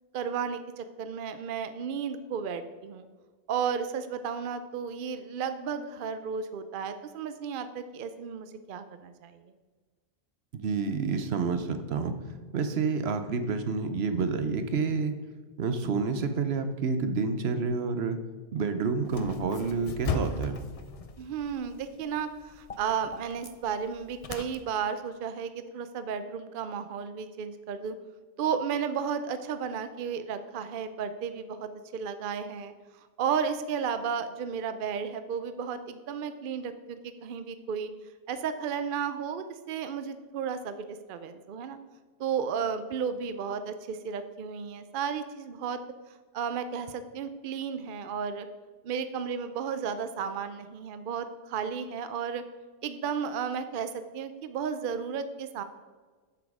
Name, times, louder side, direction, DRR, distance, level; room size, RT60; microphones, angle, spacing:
voice 1, 0.1-3.1 3.5-9.4 21.2-27.9 28.4-32.7 33.2-37.9 38.3-41.8 42.2-45.8 46.3-48.5 48.8-52.4 52.8-55.6, right 7 dB, 60° right, 10 dB, 0.7 m, -33 dB
voice 2, 10.5-12.2 12.5-15.1 15.6-18.2 18.5-20.6, right 4 dB, 80° right, 9 dB, 1.0 m, -29 dB
sound 1, 19.0-24.6, left 4 dB, 40° left, 0.6 m, -38 dB
8.0 x 7.2 x 4.9 m, 1.4 s
omnidirectional pair, 1.0 m